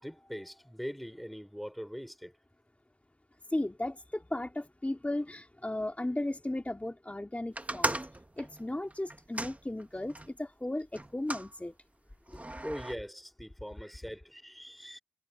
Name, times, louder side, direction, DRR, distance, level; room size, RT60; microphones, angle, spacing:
voice 1, 0.0-2.3 12.6-15.0, equal, ahead, 4.0 m, -42 dB
voice 2, 3.5-8.0 8.4-11.7 12.3-12.4, left 1 dB, 35° left, 2.2 m, -35 dB
sound 1, 7.6-10.3 10.9-11.5 12.3-12.9, right 1 dB, 35° right, 1.4 m, -37 dB
wide cardioid pair, 45°, 4 cm